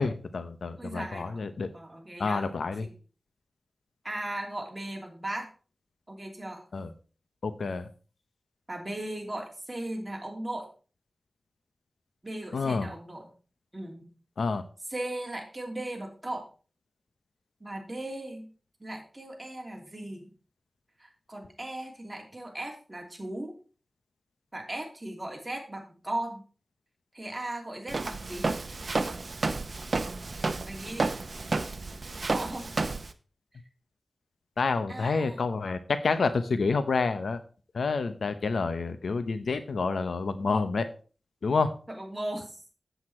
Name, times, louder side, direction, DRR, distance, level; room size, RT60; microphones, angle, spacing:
voice 1, 0.0-1.7 2.2-2.9 6.7-6.9 7.4-7.9 12.5-12.9 14.4-14.6 34.6-37.4 37.7-40.9 41.4-41.8, left 4 dB, 90° left, 10 dB, 0.8 m, -28 dB
voice 2, 0.8-1.4 1.7-2.5 2.8-2.9 4.0-5.5 6.1-6.6 8.7-10.7 12.2-13.3 13.7-14.1 14.9-16.5 17.6-18.5 18.8-20.3 21.0-23.5 24.5-26.4 27.1-28.5 30.7-31.1 32.3-32.7 34.9-35.4 41.9-42.7, right 1 dB, 20° right, 1 dB, 2.8 m, -37 dB
Walk footsteps, 27.9-33.1, right 3 dB, 50° right, 0.8 m, -31 dB
8.1 x 8.0 x 4.3 m, 0.37 s
wide cardioid pair, 85°, 0 cm